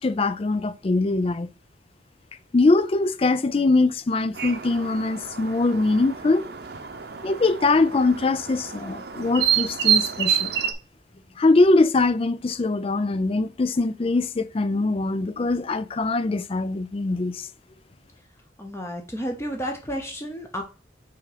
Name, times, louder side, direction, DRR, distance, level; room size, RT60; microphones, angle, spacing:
voice 1, 0.0-1.5 2.5-6.5 7.2-10.5 11.4-17.5, left 3 dB, 30° left, 0.4 m, -22 dB
sound 1, 4.3-10.7, right 9 dB, 60° right, 0.8 m, -28 dB
voice 2, 18.6-20.6, equal, 15° left, 0.8 m, -31 dB
5.7 x 3.6 x 4.9 m
head